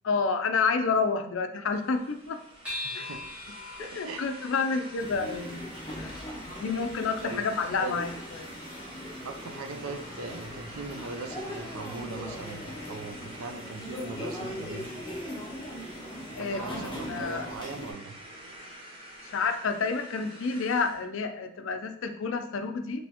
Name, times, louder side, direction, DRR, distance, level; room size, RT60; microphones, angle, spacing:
voice 1, 0.0-2.4 2.9-3.1 3.8-5.7 6.0-6.2 6.5-8.1 8.4-8.5 16.3-17.5 19.2-23.0, left 4 dB, 65° left, 8 dB, 0.4 m, -29 dB
sound 1, 1.7-21.0, right 1 dB, 25° right, 0.9 m, -47 dB
sound 2, 2.6-7.4, left 2 dB, 5° right, 1.7 m, -43 dB
voice 2, 2.8-3.2 3.8-4.4 7.2-7.5 7.8-8.0 9.2-14.9 16.4-18.1, right 3 dB, 80° right, 6 dB, 0.5 m, -40 dB
sound 3, 5.0-17.9, equal, 20° left, 0.7 m, -40 dB
4.2 x 3.3 x 2.9 m, 0.68 s
head